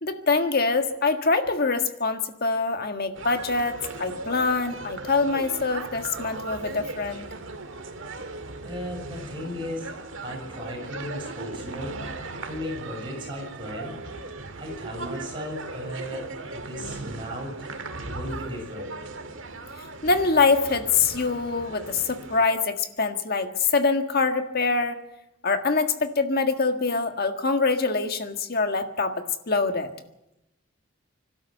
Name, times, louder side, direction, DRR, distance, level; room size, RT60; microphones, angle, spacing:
voice 1, 0.0-7.3 20.0-25.0 25.4-29.9, left 4 dB, 45° left, 7 dB, 1.7 m, -24 dB
sound 1, 3.1-22.5, right 2 dB, 60° right, 1.9 m, -38 dB
voice 2, 8.6-9.9 10.2-12.1 12.4-14.0 14.6-17.7 18.1-19.0, equal, 25° right, 0 dB, 7.1 m, -36 dB
25.5 x 12.5 x 8.1 m, 0.90 s
head